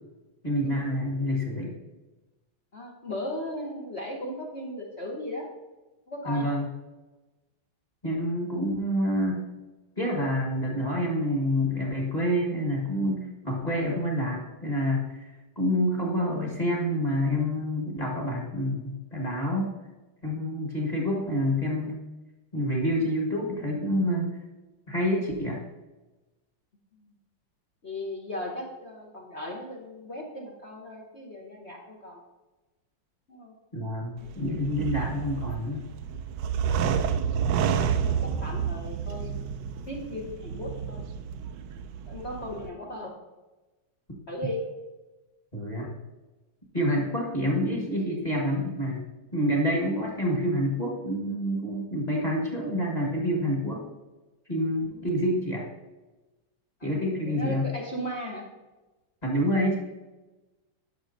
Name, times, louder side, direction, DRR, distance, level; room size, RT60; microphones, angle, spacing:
voice 1, 0.4-1.7 6.2-6.7 8.0-9.5 10.0-19.7 20.2-22.0 22.5-24.4 24.9-25.6 33.7-35.8 45.5-46.0 46.7-49.1 49.3-53.8 54.5-55.7 56.8-57.7 59.2-59.8, equal, 25° left, -2 dB, 1.4 m, -27 dB
voice 2, 2.7-5.5 6.1-6.5 27.0-27.1 27.8-32.2 33.3-33.5 34.4-34.5 37.7-39.4 39.9-41.0 42.1-43.1 44.3-44.6 54.9-55.1 56.8-58.5, left 1 dB, 45° left, -2 dB, 1.0 m, -37 dB
sound 1, 34.2-42.7, right 7 dB, 75° right, 1.1 m, -30 dB
10.0 x 6.1 x 2.6 m, 1.1 s
omnidirectional pair, 2.2 m